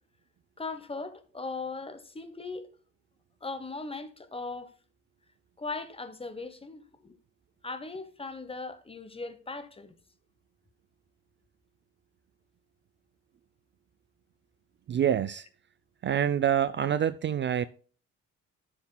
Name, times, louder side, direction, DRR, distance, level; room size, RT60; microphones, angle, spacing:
voice 1, 0.6-2.7 3.4-4.7 5.6-7.2 7.6-9.9, left 3 dB, 20° left, 1.0 m, -38 dB
voice 2, 14.9-15.5 16.0-17.7, right 9 dB, 40° right, 0.4 m, -26 dB
11.5 x 7.1 x 2.2 m
cardioid pair, 90°, 30 cm